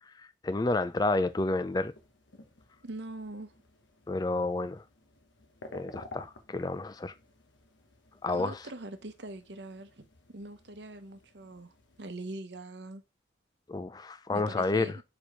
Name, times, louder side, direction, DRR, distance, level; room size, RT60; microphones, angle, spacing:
voice 1, 0.2-1.9 4.1-4.8 5.7-7.1 8.2-8.6 13.7-14.9, left 2 dB, 20° left, 0.4 m, -30 dB
sound 1, 0.5-12.2, left 2 dB, 85° left, 1.2 m, -54 dB
voice 2, 2.8-3.5 8.3-13.0 14.3-15.0, right 2 dB, 70° right, 0.9 m, -43 dB
4.6 x 4.4 x 5.0 m
head